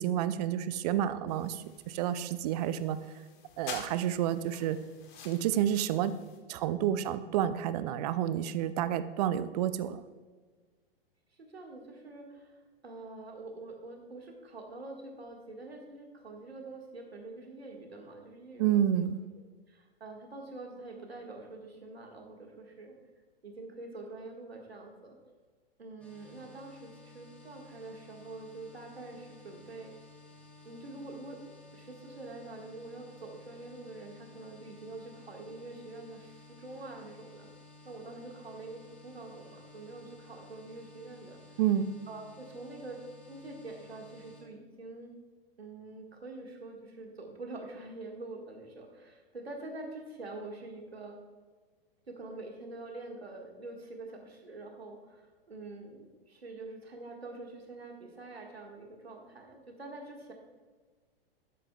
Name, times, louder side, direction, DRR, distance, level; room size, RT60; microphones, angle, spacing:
voice 1, 0.0-3.0 3.6-4.8 5.2-6.2 6.5-10.0 18.6-19.2 41.6-41.9, right 10 dB, 40° right, 14 dB, 0.5 m, -29 dB
sound 1, 1.3-6.4, left 5 dB, 55° left, 1.6 m, -48 dB
voice 2, 6.3-6.9 11.4-19.1 19.4-23.0 23.4-25.2 25.8-30.1 30.6-37.5 37.8-41.6 42.1-43.0 43.3-45.1 45.6-51.2 52.1-60.3, right 2 dB, 85° right, 1 dB, 1.7 m, -46 dB
sound 2, 26.0-44.4, left 2 dB, 5° left, 1.9 m, -55 dB
12.5 x 8.4 x 2.3 m, 1.4 s
figure-of-eight pair, 100°, 30 cm